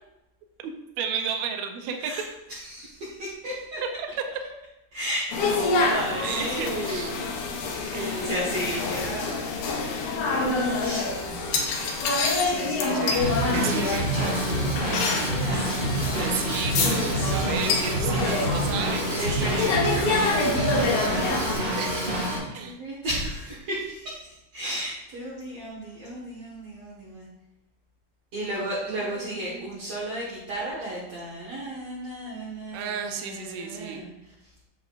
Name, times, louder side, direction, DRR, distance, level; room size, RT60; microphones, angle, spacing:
voice 1, 0.6-2.1 4.0-4.1 6.2-7.1 7.9-8.9 11.2-12.1 12.8-13.2 13.5-14.1 15.8-15.9 16.2-19.9 20.6-20.8 21.8-22.0 22.5-22.8 28.9-29.7 32.7-34.0, right 6 dB, 80° right, 5 dB, 1.6 m, -34 dB
voice 2, 2.5-3.8 4.9-7.1 7.9-9.5 10.8-11.1 12.4-15.7 17.1-18.4 19.1-21.5 22.3-27.3 28.3-34.5, equal, 55° right, -7 dB, 2.2 m, -34 dB
sound 1, 5.3-21.5, left 3 dB, 70° left, 2.2 m, -27 dB
Drum kit / Drum, 13.2-22.4, right 1 dB, 40° right, 2.3 m, -27 dB
8.1 x 7.3 x 2.5 m, 0.94 s
omnidirectional pair, 3.9 m